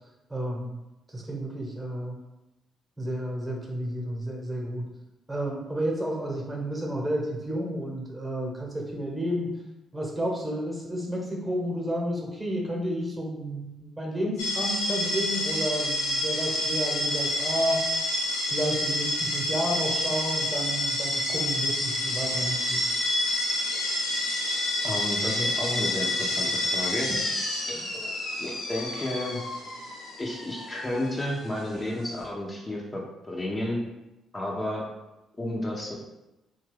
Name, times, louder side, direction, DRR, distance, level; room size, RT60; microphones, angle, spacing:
voice 1, 0.3-0.7 1.1-2.2 3.0-4.8 5.3-9.6 9.9-17.8 18.5-22.8 27.7-27.9, equal, 20° right, -2 dB, 1.0 m, -31 dB
sound 1, 14.4-32.2, left 1 dB, 85° left, 0.7 m, -29 dB
voice 2, 24.8-27.1 27.6-28.1 28.4-29.4 30.2-33.8 34.3-34.9 35.4-35.9, left 1 dB, 25° left, -3 dB, 0.7 m, -32 dB
2.8 x 2.3 x 3.3 m, 0.98 s
hypercardioid pair, 45°, 0 cm